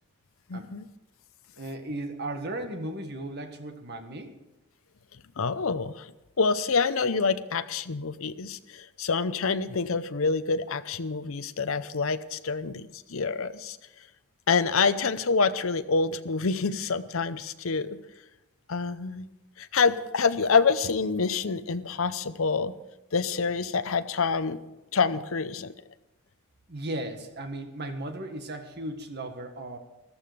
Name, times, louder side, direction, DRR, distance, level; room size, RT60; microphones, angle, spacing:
voice 1, 0.5-0.9 5.4-6.1 6.4-13.8 14.5-18.0 18.7-19.3 19.6-22.7 23.1-24.6 24.9-25.7, left 4 dB, 65° left, 12 dB, 0.7 m, -27 dB
voice 2, 1.6-4.3 26.7-29.8, right 1 dB, 50° right, 6 dB, 1.7 m, -36 dB
14.0 x 13.0 x 5.1 m, 0.99 s
head